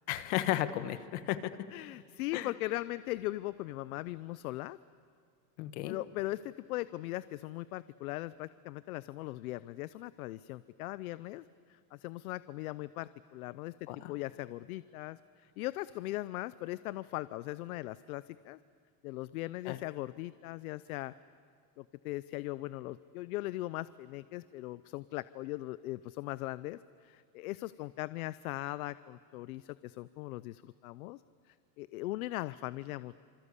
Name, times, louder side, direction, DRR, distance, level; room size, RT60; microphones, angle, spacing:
voice 1, 0.1-1.5 2.3-2.5 5.6-6.0 13.9-14.1 19.6-19.8, left 14 dB, 55° left, 11 dB, 1.4 m, -34 dB
voice 2, 1.7-4.8 5.9-18.6 19.0-21.1 21.8-33.2, left 18 dB, 90° left, 16 dB, 0.7 m, -39 dB
27.0 x 26.5 x 8.4 m, 2.2 s
supercardioid pair, 175°, 42 cm